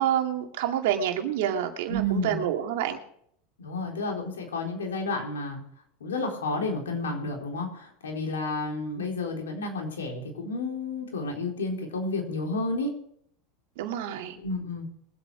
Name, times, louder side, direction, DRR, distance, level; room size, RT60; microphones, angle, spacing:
voice 1, 0.0-3.0 13.8-14.3, right 10 dB, 70° right, 5 dB, 2.3 m, -28 dB
voice 2, 1.9-2.4 3.6-5.6 6.0-12.9 14.4-14.9, left 2 dB, 85° left, 1 dB, 4.0 m, -31 dB
22.5 x 8.5 x 5.0 m, 0.68 s
hypercardioid pair, 90°, 0 cm